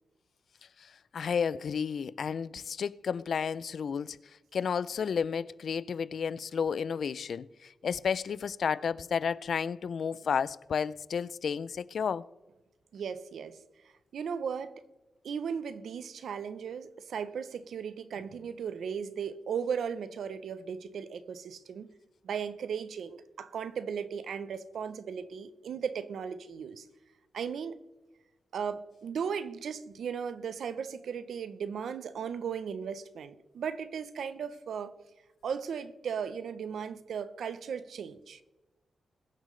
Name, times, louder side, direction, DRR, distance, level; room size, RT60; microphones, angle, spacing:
voice 1, 0.8-4.2 4.5-12.3, left 6 dB, 60° left, 0.3 m, -32 dB
voice 2, 12.9-13.6 14.1-14.8 15.2-21.9 22.2-26.8 27.3-27.8 28.5-34.9 35.4-38.4, right 7 dB, 75° right, 0.7 m, -36 dB
21.5 x 7.5 x 3.2 m
wide cardioid pair, 140°, 0 cm